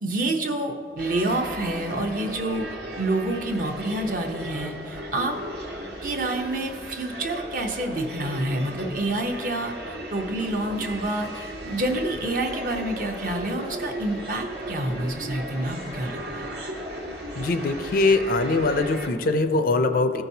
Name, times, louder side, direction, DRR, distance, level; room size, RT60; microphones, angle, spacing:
voice 1, 0.0-2.7 3.0-5.4 6.0-16.4, right 1 dB, 50° right, 3 dB, 0.8 m, -28 dB
sound 1, 1.0-19.1, right 1 dB, 75° right, 1.4 m, -36 dB
voice 2, 17.3-20.2, left 2 dB, 50° left, 8 dB, 0.4 m, -22 dB
15.5 x 5.8 x 2.7 m, 2.4 s
head